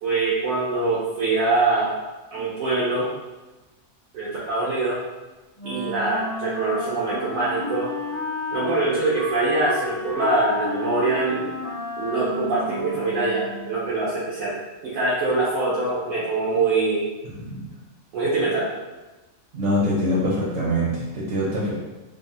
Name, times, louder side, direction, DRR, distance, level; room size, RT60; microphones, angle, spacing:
voice 1, 0.0-1.9 2.3-3.1 4.1-5.0 5.6-7.9 8.5-11.5 12.0-14.5 14.8-17.0 18.1-18.7, right 3 dB, 85° right, -8 dB, 1.1 m, -23 dB
Wind instrument woodwind instrument, 5.6-13.8, left 2 dB, 25° left, 0.4 m, -32 dB
voice 2, 19.5-21.7, equal, 70° right, -6 dB, 1.0 m, -23 dB
3.3 x 2.0 x 2.6 m, 1.1 s
omnidirectional pair, 1.4 m